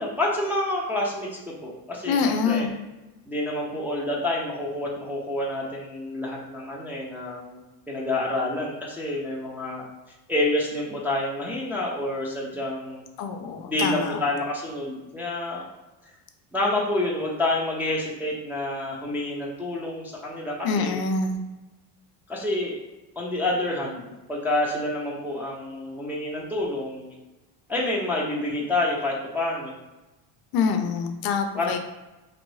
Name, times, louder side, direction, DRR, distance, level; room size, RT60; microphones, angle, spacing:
voice 1, 0.0-2.7 3.3-7.6 7.9-9.8 10.3-13.0 13.7-15.6 16.5-21.0 22.3-22.8 23.2-27.2 27.7-29.7 31.5-31.7, left 1 dB, 5° right, -5 dB, 0.4 m, -28 dB
voice 2, 2.1-2.8 13.2-14.2 20.6-21.4 30.5-31.8, left 5 dB, 55° left, 6 dB, 0.5 m, -25 dB
3.0 x 2.5 x 3.1 m, 1.1 s
cardioid pair, 125°, 46 cm